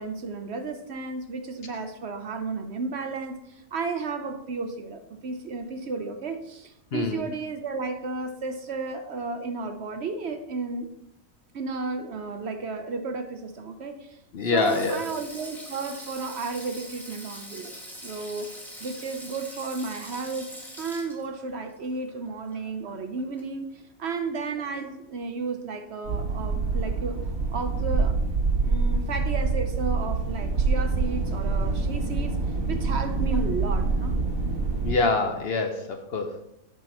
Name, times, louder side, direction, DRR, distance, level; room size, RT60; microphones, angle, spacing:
voice 1, 0.0-10.9 11.5-18.5 18.8-27.2 27.5-28.2 28.6-32.4 32.7-34.2, right 4 dB, 60° right, 7 dB, 0.9 m, -33 dB
voice 2, 6.9-7.2 14.3-15.0 34.8-36.5, left 3 dB, 55° left, 6 dB, 0.8 m, -25 dB
Sink (filling or washing), 14.4-22.9 23.2-23.4 24.6-24.8, equal, ahead, 1.8 m, -43 dB
sound 1, 26.0-35.0, right 4 dB, 75° right, 1.5 m, -26 dB
7.2 x 5.8 x 4.2 m, 0.81 s
omnidirectional pair, 1.4 m